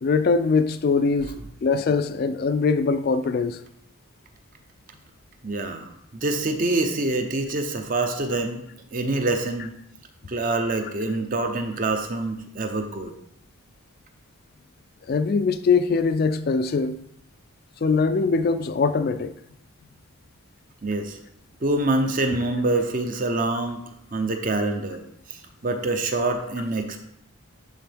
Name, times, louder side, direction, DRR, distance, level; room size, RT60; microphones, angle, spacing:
voice 1, 0.0-3.6 15.1-17.0 17.8-19.3, left 4 dB, 45° left, 0.3 m, -22 dB
voice 2, 5.4-8.6 8.9-9.7 10.3-13.1 20.8-21.2 21.6-23.8 24.1-25.0 25.3-27.0, right 2 dB, 40° right, 0.6 m, -26 dB
10.5 x 3.7 x 3.4 m
head